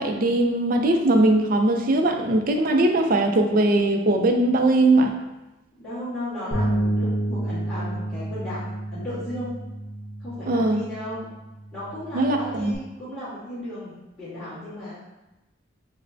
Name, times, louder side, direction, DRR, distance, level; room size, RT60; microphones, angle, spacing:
voice 1, 0.0-5.1 10.5-10.8 12.1-12.7, right 2 dB, 45° right, 4 dB, 0.4 m, -20 dB
voice 2, 5.8-8.6 8.9-9.5 10.2-11.3 11.7-15.0, left 1 dB, ahead, -17 dB, 1.3 m, -35 dB
Bass guitar, 6.5-12.8, right 1 dB, 35° left, 1.0 m, -30 dB
6.2 x 2.1 x 2.6 m, 1.0 s
head